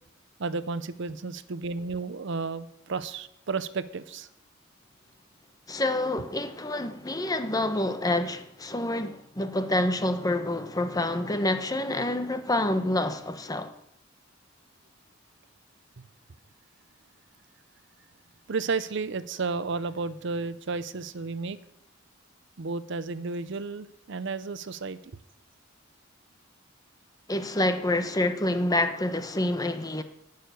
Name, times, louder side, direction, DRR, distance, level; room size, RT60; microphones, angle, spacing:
voice 1, 0.4-4.3 18.5-21.6 22.6-25.2, right 4 dB, 65° right, 0.6 m, -32 dB
voice 2, 5.7-13.7 27.3-30.0, left 1 dB, 20° left, 1.0 m, -27 dB
11.5 x 6.6 x 9.3 m
head